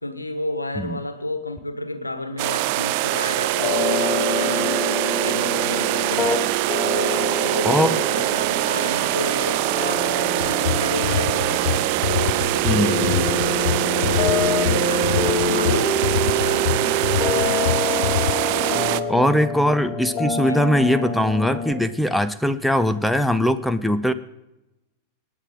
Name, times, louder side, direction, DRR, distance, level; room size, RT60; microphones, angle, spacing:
voice 1, 0.0-4.9 5.1-6.4 6.8-11.7 12.1-13.4 13.8-18.1 18.6-19.4 20.4-20.7, left 2 dB, 85° left, 10 dB, 1.4 m, -32 dB
sound 1, 2.4-19.0, right 17 dB, 45° right, 0.6 m, -23 dB
sound 2, 3.5-21.7, left 3 dB, 30° left, 2.9 m, -27 dB
sound 3, 10.4-18.3, left 9 dB, 65° left, 0.7 m, -25 dB
voice 2, 12.6-13.1 19.1-24.1, left 1 dB, ahead, 11 dB, 0.7 m, -21 dB
25.5 x 9.3 x 3.8 m, 0.94 s
figure-of-eight pair, 90°, 0 cm